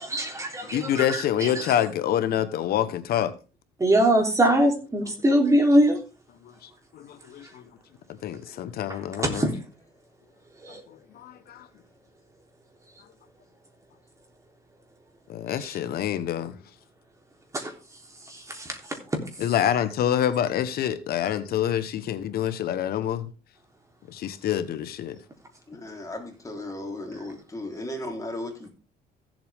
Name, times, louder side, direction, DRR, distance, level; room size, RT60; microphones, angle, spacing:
voice 1, 0.0-1.8 3.8-6.0 8.9-9.5 10.6-10.8 15.6-15.8 17.5-17.7 18.3-18.8, right 1 dB, 20° right, 3.4 m, -23 dB
voice 2, 0.7-3.3 6.6-7.6 8.2-9.4 10.9-11.7 15.3-16.6 19.4-23.3 24.1-25.2, left 10 dB, 65° left, 1.2 m, -27 dB
voice 3, 25.7-28.7, left 1 dB, 20° left, 3.8 m, -35 dB
15.5 x 7.8 x 3.6 m
cardioid pair, 110°, 17 cm